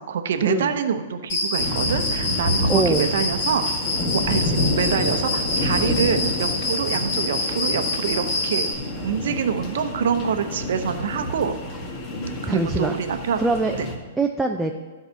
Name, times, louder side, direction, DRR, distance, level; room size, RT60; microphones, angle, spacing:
voice 1, 0.0-3.6 4.1-8.7 9.0-11.6 12.4-13.4 13.7-13.9, right 7 dB, 65° right, 8 dB, 0.9 m, -26 dB
Cricket, 1.3-8.7, left 2 dB, 50° left, 2.6 m, -26 dB
sound 1, 1.6-14.0, left 1 dB, 35° left, 1.8 m, -28 dB
voice 2, 2.7-3.1 12.5-13.0 13.4-13.8 14.2-14.7, right 2 dB, 10° right, 2 dB, 0.6 m, -23 dB
12.0 x 4.9 x 5.7 m, 1.3 s
hypercardioid pair, 120°, 0 cm